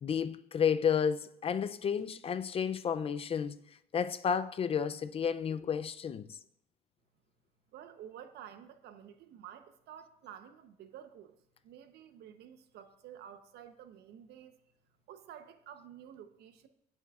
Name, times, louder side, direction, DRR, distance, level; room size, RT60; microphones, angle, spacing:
voice 1, 0.0-3.6 3.9-6.4, left 7 dB, 35° left, 0.4 m, -31 dB
voice 2, 7.7-11.4 11.6-14.5 15.1-16.7, right 9 dB, 75° right, 0.9 m, -51 dB
16.0 x 7.2 x 2.4 m
cardioid pair, 110°, 17 cm